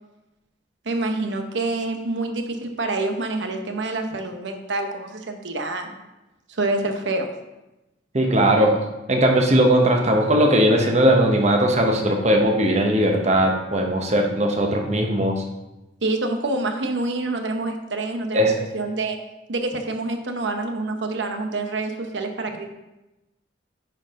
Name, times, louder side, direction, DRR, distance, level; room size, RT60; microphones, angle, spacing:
voice 1, 0.8-6.0 6.5-7.3 16.0-19.2 19.5-22.7, right 2 dB, 90° right, 5 dB, 0.9 m, -27 dB
voice 2, 8.1-8.7 9.1-15.4 18.3-18.5, right 1 dB, 40° right, 2 dB, 1.0 m, -19 dB
10.0 x 4.6 x 3.7 m, 1.0 s
head